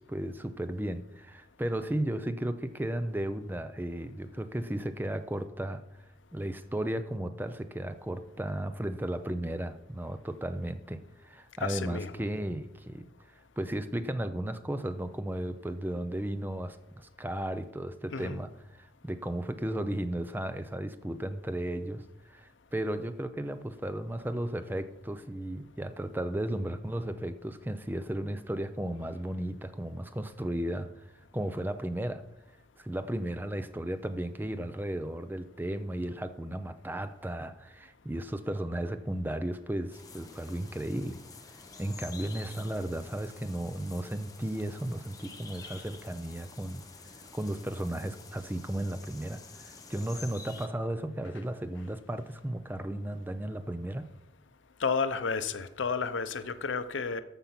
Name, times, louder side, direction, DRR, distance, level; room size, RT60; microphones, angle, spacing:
voice 1, 0.0-5.8 6.3-30.9 31.3-32.2 32.8-41.2 41.5-46.8 47.3-54.1, right 1 dB, 10° right, 0.5 m, -35 dB
voice 2, 11.6-12.2 18.1-18.4 54.8-57.2, left 5 dB, 80° left, 0.7 m, -31 dB
sound 1, 39.9-50.7, left 4 dB, 20° left, 1.0 m, -49 dB
14.0 x 5.6 x 5.8 m
head